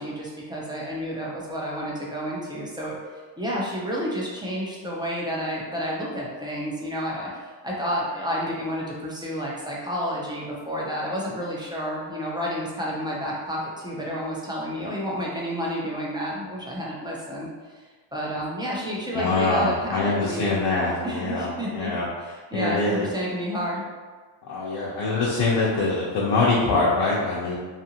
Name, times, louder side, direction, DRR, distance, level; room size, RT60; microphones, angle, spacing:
voice 1, 0.0-3.0 3.4-7.3 7.6-17.5 18.1-20.5 21.0-21.9 22.2-23.8, equal, 10° right, -5 dB, 0.4 m, -30 dB
voice 2, 19.1-22.1 22.5-23.1 24.4-27.6, left 3 dB, 70° left, -6 dB, 0.7 m, -24 dB
2.7 x 2.5 x 2.8 m, 1.4 s
cardioid pair, 135°, 45 cm